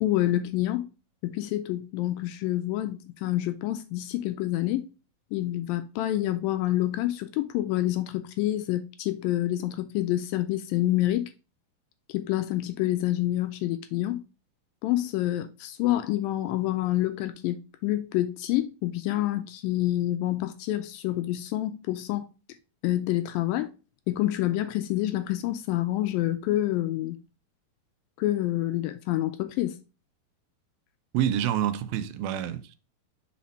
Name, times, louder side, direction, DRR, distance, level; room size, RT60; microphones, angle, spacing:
voice 1, 0.0-0.9 1.2-4.9 5.3-11.3 12.1-14.2 14.8-22.3 22.8-23.7 24.1-27.2 28.2-29.8, left 14 dB, 80° left, 2.1 m, -27 dB
voice 2, 31.1-32.8, right 10 dB, 90° right, 2.5 m, -27 dB
5.7 x 4.2 x 4.2 m
omnidirectional pair, 4.4 m